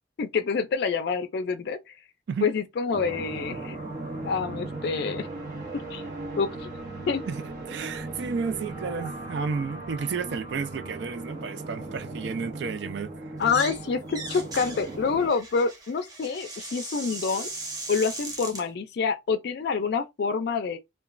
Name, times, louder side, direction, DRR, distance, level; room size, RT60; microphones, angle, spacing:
voice 1, 0.2-1.8 2.4-3.8 4.2-5.3 5.9-6.0 6.4-6.7 7.1-7.2 13.4-17.5 17.9-20.8, left 5 dB, 60° left, 0.4 m, -27 dB
sound 1, 2.9-15.3, right 2 dB, 50° right, 0.8 m, -37 dB
voice 2, 7.3-13.3, right 5 dB, 65° right, 0.4 m, -32 dB
sound 2, 13.4-13.8 14.1-18.6, right 2 dB, 20° right, 0.7 m, -38 dB
2.9 x 2.2 x 2.4 m
head